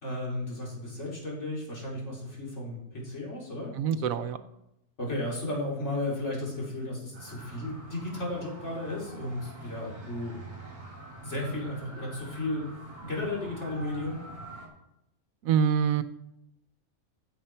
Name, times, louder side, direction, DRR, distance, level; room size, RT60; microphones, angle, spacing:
voice 1, 0.0-4.1 5.0-10.3 11.2-12.7 13.0-14.2, left 1 dB, 50° left, -4 dB, 3.2 m, -34 dB
voice 2, 3.7-4.4 15.4-16.0, right 7 dB, 70° right, 11 dB, 1.1 m, -25 dB
sound 1, 7.1-14.7, right 1 dB, 30° right, 2.9 m, -45 dB
15.0 x 7.3 x 4.4 m, 0.86 s
omnidirectional pair, 1.5 m